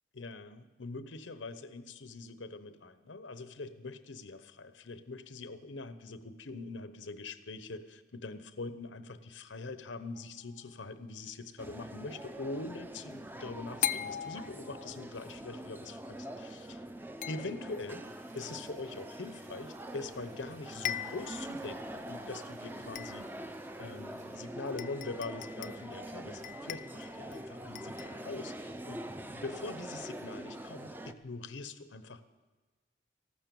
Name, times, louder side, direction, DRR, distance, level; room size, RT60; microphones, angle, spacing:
voice 1, 0.1-16.8 17.3-18.1 18.3-23.5 23.8-29.0 29.3-32.2, left 3 dB, 90° left, 11 dB, 0.9 m, -43 dB
sound 1, 10.1-10.7 13.8-15.1 17.2-18.0 20.1-20.2 20.5-20.6 20.8-21.5 22.0-22.1 22.9-23.5 24.3-24.4 24.8-25.9 26.4-27.4 27.7-28.2, left 11 dB, 45° left, 0.4 m, -39 dB
sound 2, 11.6-31.1, right 1 dB, 10° right, 0.5 m, -44 dB
sound 3, 18.0-24.4, right 4 dB, 40° right, 2.4 m, -62 dB
14.5 x 12.0 x 7.0 m, 1.3 s
head